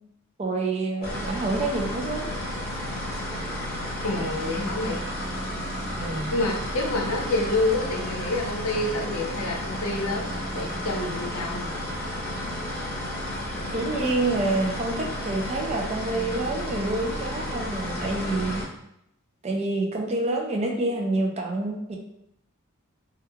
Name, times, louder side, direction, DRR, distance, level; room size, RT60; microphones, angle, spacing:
voice 1, 0.4-2.3 6.0-6.4 13.7-18.6 19.4-22.0, right 2 dB, 30° right, 1 dB, 0.4 m, -27 dB
sound 1, 1.0-18.6, equal, 45° left, 0.8 m, -32 dB
voice 2, 4.0-5.0 6.3-11.8, left 2 dB, 80° left, 1 dB, 0.6 m, -28 dB
3.0 x 2.3 x 2.2 m, 0.79 s
head